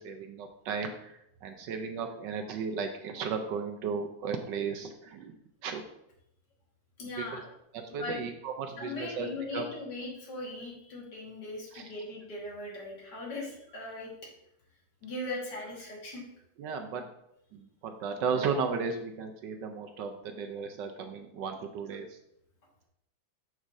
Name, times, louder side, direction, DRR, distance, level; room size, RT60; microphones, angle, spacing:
voice 1, 0.0-5.3 5.6-5.8 7.2-7.4 7.7-9.7 11.7-11.8 16.6-17.1 17.5-22.2, right 5 dB, 75° right, 5 dB, 1.2 m, -35 dB
voice 2, 7.0-7.5 8.0-8.2 8.8-14.1 15.0-16.2, left 2 dB, 60° left, -3 dB, 2.2 m, -39 dB
6.3 x 6.3 x 2.6 m, 0.78 s
omnidirectional pair, 2.1 m